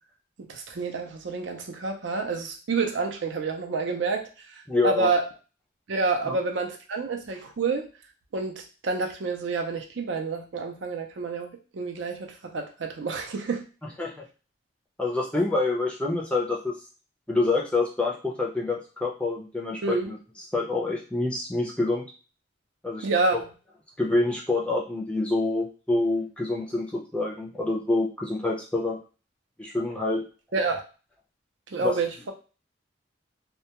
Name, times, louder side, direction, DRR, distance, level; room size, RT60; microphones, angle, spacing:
voice 1, 0.5-4.3 4.8-5.2 5.9-7.9 8.3-11.5 11.7-13.7 19.8-20.1 23.0-23.4 30.5-30.8 31.7-32.3, right 4 dB, 70° right, 4 dB, 0.5 m, -28 dB
voice 2, 4.7-5.1 6.3-6.4 14.0-14.1 15.0-16.7 17.3-20.2 20.5-22.0 22.8-23.1 23.3-23.4 24.0-29.0 29.6-30.3 31.8-32.0, left 2 dB, 5° left, -2 dB, 0.4 m, -26 dB
2.2 x 2.2 x 2.8 m, 0.35 s
head